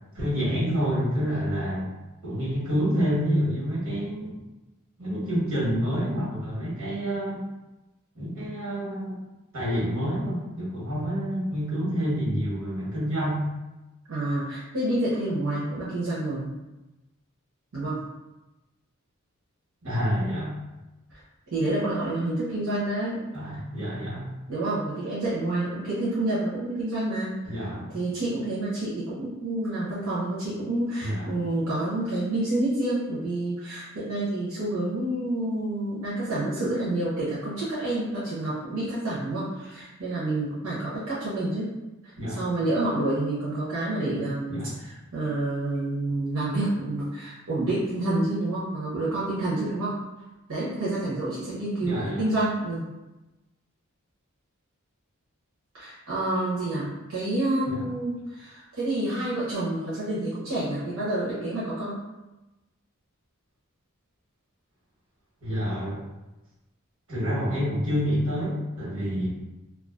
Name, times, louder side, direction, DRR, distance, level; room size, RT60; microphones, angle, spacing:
voice 1, 0.1-1.9 2.2-4.3 5.0-7.4 8.1-9.2 9.5-13.4 19.8-20.5 23.3-24.3 27.4-27.9 31.0-31.4 42.2-42.4 44.5-44.7 51.8-52.2 57.7-57.8 65.4-66.0 67.1-69.3, equal, 70° right, -6 dB, 1.1 m, -28 dB
voice 2, 14.1-16.6 17.7-18.0 21.1-21.2 21.5-23.2 23.5-23.6 24.5-27.6 27.9-41.7 42.0-50.0 50.5-52.9 55.7-62.0, right 1 dB, 90° right, -9 dB, 0.7 m, -28 dB
2.3 x 2.3 x 2.4 m, 1.0 s
head